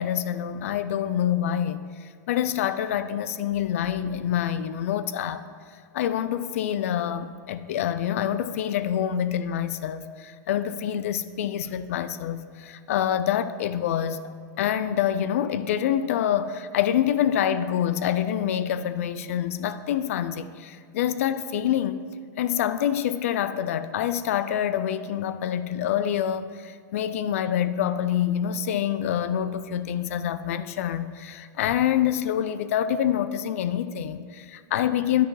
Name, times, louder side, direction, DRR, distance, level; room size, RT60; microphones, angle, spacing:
voice 1, 0.0-1.8 2.3-5.5 5.9-14.3 14.6-22.0 22.4-35.3, left 10 dB, 45° left, 13 dB, 0.4 m, -26 dB
9.3 x 6.4 x 4.7 m, 2.1 s
supercardioid pair, 180°, 10 cm